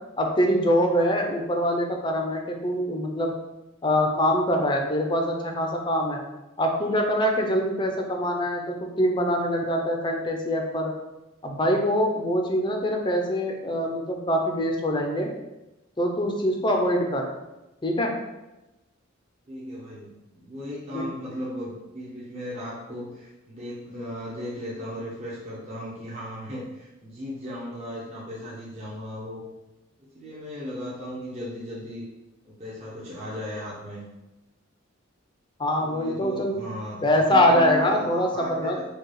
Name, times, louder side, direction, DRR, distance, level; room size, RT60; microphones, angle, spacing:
voice 1, 0.2-3.3 3.8-6.2 6.6-10.9 11.4-15.3 16.0-17.3 17.8-18.1 20.9-21.1 35.6-36.6 37.0-38.8, equal, 25° left, 2 dB, 0.6 m, -24 dB
voice 2, 19.5-29.4 30.0-32.1 32.4-34.1 35.7-38.8, equal, 35° right, -7 dB, 1.0 m, -36 dB
4.6 x 2.3 x 4.7 m, 1.0 s
head